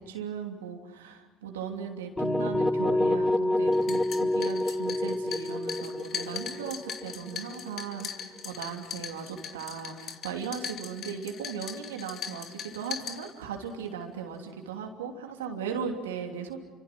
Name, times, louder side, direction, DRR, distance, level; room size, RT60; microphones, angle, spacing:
voice 1, 0.0-16.6, right 6 dB, 90° right, 3 dB, 3.0 m, -37 dB
sound 1, 2.2-8.0, left 1 dB, 10° left, 0.8 m, -28 dB
sound 2, 3.7-13.7, left 7 dB, 55° left, 2.4 m, -40 dB
29.5 x 25.5 x 6.1 m, 1.3 s
hypercardioid pair, 65°, 0 cm